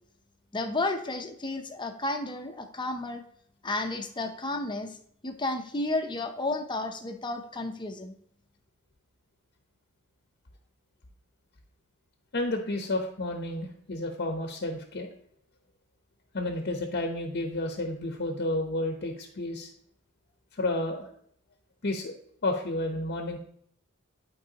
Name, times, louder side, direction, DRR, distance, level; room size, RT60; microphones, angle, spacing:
voice 1, 0.5-3.2 3.6-5.0 5.2-8.1, left 2 dB, 20° left, 6 dB, 0.7 m, -32 dB
voice 2, 12.3-15.1 16.3-19.7 20.6-21.1 21.8-22.1 22.4-23.4, left 2 dB, 50° left, 3 dB, 0.8 m, -31 dB
11.5 x 4.6 x 2.9 m, 0.65 s
head